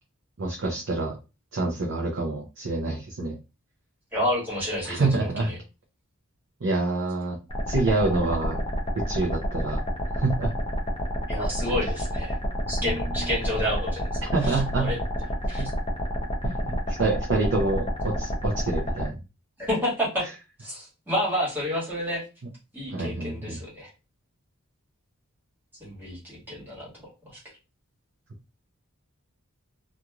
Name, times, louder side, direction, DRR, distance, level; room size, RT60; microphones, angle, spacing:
voice 1, 0.4-1.1 1.5-3.4 4.8-5.5 6.6-7.4 7.7-8.6 8.9-9.8 10.1-10.5 12.8-13.0 14.3-14.9 15.6-15.7 16.4-19.2 22.9-23.6, right 3 dB, 60° right, -1 dB, 0.6 m, -27 dB
voice 2, 4.1-5.6 11.3-12.4 12.7-15.0 15.5-15.7 19.6-20.2 20.6-22.2 22.7-23.9 25.8-26.9 27.2-27.4, equal, 10° right, -6 dB, 1.5 m, -30 dB
sound 1, 7.5-19.1, equal, 25° left, 0.6 m, -29 dB
2.9 x 2.5 x 2.3 m, 0.29 s
head